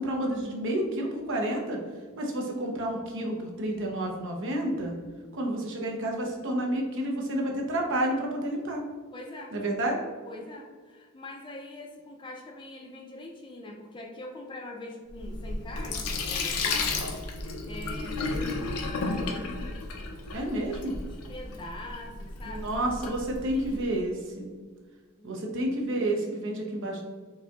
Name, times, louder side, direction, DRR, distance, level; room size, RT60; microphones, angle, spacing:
voice 1, 0.0-1.8 2.2-5.0 5.3-8.8 9.5-10.0 20.3-21.0 22.4-24.5 25.2-27.0, right 1 dB, 60° right, 0 dB, 0.7 m, -30 dB
voice 2, 9.1-9.6 10.2-19.5 21.1-22.6 23.5-24.0 25.2-25.4, left 1 dB, 20° left, 1 dB, 0.4 m, -43 dB
Sink (filling or washing), 15.1-23.9, left 3 dB, 90° left, 0.5 m, -33 dB
4.8 x 2.8 x 2.3 m, 1.5 s
head